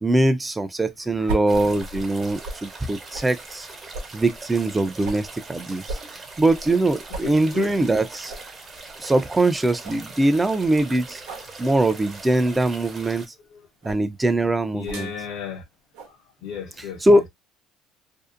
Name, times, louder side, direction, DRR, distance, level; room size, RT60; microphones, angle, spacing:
voice 1, 0.0-3.7 4.1-8.3 9.0-11.2 11.6-13.3 13.8-15.1 17.0-17.3, right 2 dB, 15° right, 0.4 m, -22 dB
sound 1, 1.3-2.7 3.1-3.3 3.9-5.3 5.9-6.8 7.1-7.3 7.7-7.8 8.3-8.5 9.0-9.1 9.4-9.5 9.8-10.1 11.2-11.5 12.4-12.7 13.8-14.1 14.8-15.1 15.9-16.1, right 1 dB, 90° right, 0.6 m, -35 dB
sound 2, 1.5-13.3, right 3 dB, 35° right, 0.8 m, -41 dB
voice 2, 7.2-7.7 13.5-13.7 14.7-15.6 16.1-17.2, left 7 dB, 75° left, 0.5 m, -35 dB
2.6 x 2.0 x 2.4 m
supercardioid pair, 85°, 0 cm